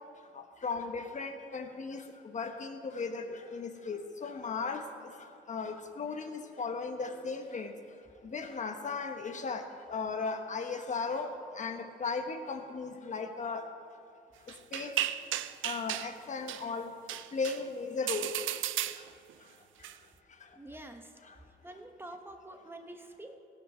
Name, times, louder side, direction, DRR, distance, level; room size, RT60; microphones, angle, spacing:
voice 1, 0.6-2.0 2.3-4.8 5.5-7.7 8.2-9.6 9.9-13.6 14.7-14.9 15.6-16.9 17.3-18.3, left 4 dB, 40° left, 5 dB, 1.2 m, -36 dB
sound 1, 14.5-16.1 16.5-16.7 17.1-17.6 18.1-19.3 19.8-19.9, right 13 dB, 75° right, 0.4 m, -34 dB
voice 2, 20.6-21.1 21.6-23.4, right 1 dB, 10° right, 5 dB, 1.1 m, -47 dB
17.5 x 5.9 x 5.8 m, 2.3 s
cardioid pair, 90°, 20 cm